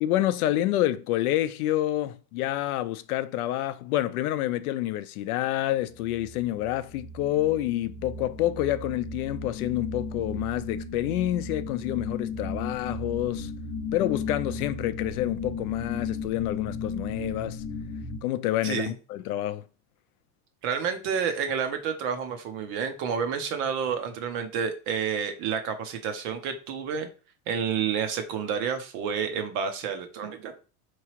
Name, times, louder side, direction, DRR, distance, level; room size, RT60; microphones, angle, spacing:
voice 1, 0.0-13.5 13.9-17.6 18.2-19.6, left 14 dB, 85° left, 0.6 m, -28 dB
sound 1, 5.8-18.2, left 3 dB, 25° left, 0.7 m, -35 dB
voice 2, 20.6-27.1 27.5-30.5, right 7 dB, 30° right, 0.4 m, -29 dB
4.7 x 3.0 x 2.8 m
supercardioid pair, 165°, 43 cm